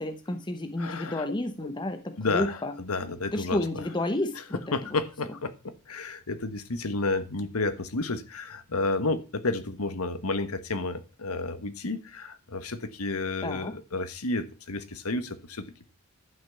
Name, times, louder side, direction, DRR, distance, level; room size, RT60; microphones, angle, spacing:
voice 1, 0.0-2.7 3.3-4.6 13.4-13.8, left 1 dB, 20° left, 0.9 m, -31 dB
voice 2, 0.8-1.2 1.6-1.7 2.2-3.8 4.7-15.8, left 3 dB, 85° left, 1.4 m, -31 dB
11.5 x 6.0 x 7.1 m
head